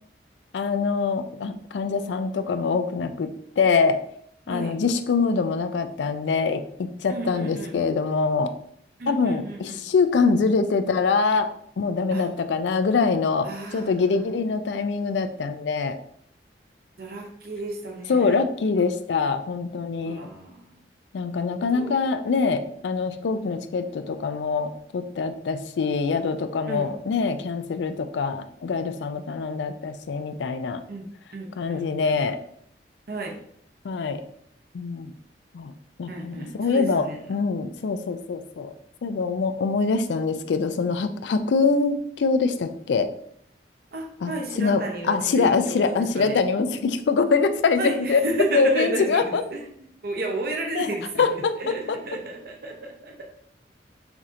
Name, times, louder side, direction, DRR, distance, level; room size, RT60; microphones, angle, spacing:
voice 1, 0.5-4.0 4.5-8.5 9.1-11.5 11.8-16.0 18.1-20.3 21.1-30.8 31.6-32.4 33.8-34.2 34.7-35.1 35.5-35.7 36.0-38.7 39.0-43.1 44.2-44.3 44.6-48.2 48.5-49.4 50.8-50.9 51.2-52.0, left 4 dB, 80° left, 9 dB, 0.4 m, -24 dB
voice 2, 4.5-4.8 7.1-7.8 9.0-9.9 12.1-12.3 13.4-13.9 17.0-18.4 20.0-20.6 21.7-22.0 26.7-26.9 30.9-31.1 31.3-32.1 33.1-33.4 36.1-37.2 43.9-46.4 47.8-49.7 50.0-53.2, right 2 dB, 55° right, 1 dB, 0.6 m, -32 dB
5.8 x 2.8 x 2.5 m, 0.66 s
head